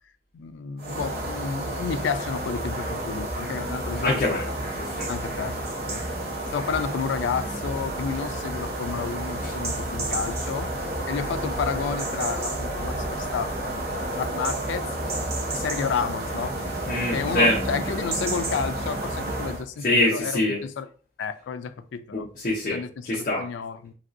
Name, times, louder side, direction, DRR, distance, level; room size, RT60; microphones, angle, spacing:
voice 1, 0.3-4.4 5.1-5.6 5.9-6.0 6.5-10.7 11.1-14.9 15.5-16.6 17.1-19.9 20.1-20.3 20.6-20.9 21.2-22.3 22.7-23.9, left 6 dB, 90° left, 0.3 m, -31 dB
sound 1, 0.8-19.6, right 1 dB, 55° right, 0.7 m, -30 dB
voice 2, 4.0-4.5 4.8-5.1 9.4-9.6 16.9-17.6 19.8-20.6 22.1-23.5, left 1 dB, 45° left, 0.6 m, -24 dB
3.0 x 2.6 x 2.5 m
head